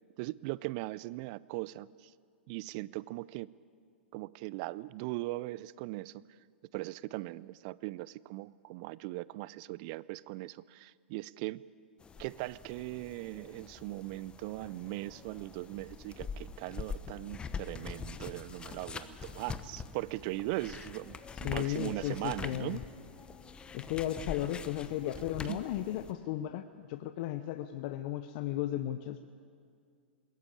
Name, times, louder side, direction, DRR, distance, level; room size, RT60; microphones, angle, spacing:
voice 1, 0.2-2.1 2.5-3.5 4.1-6.2 6.7-11.6 12.2-22.8 25.4-25.6, right 19 dB, 45° right, 21 dB, 0.5 m, -39 dB
sound 1, 12.0-26.1, left 5 dB, 15° left, 1.0 m, -44 dB
voice 2, 21.4-22.8 23.7-29.2, left 13 dB, 50° left, 10 dB, 0.8 m, -35 dB
21.5 x 17.0 x 8.6 m, 2.2 s
hypercardioid pair, 105°, 6 cm